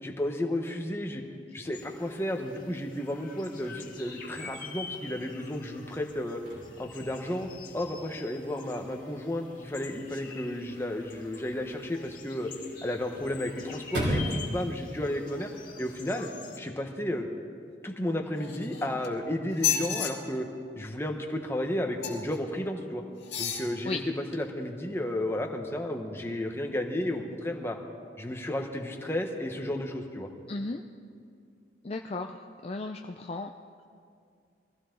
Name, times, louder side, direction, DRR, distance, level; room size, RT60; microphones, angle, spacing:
voice 1, 0.0-1.2 1.5-6.4 6.8-7.5 7.7-12.5 12.8-15.5 15.8-16.3 16.6-17.3 17.8-20.5 20.8-23.0 23.4-27.8 28.2-30.3, left 1 dB, 15° left, 2 dB, 1.2 m, -33 dB
sound 1, 1.7-16.6, left 5 dB, 50° left, 1.8 m, -47 dB
Chirp tweet / Car / Slam, 6.1-16.1, equal, 85° right, 5.4 m, -39 dB
sound 2, 18.4-19.1 19.5-20.1 22.0-22.4 23.2-23.7 24.3-24.4, left 9 dB, 70° left, 2.0 m, -31 dB
voice 2, 30.5-30.8 31.8-32.4 32.6-33.5, left 3 dB, 35° left, 4 dB, 0.5 m, -34 dB
22.5 x 15.5 x 3.9 m, 2.3 s
head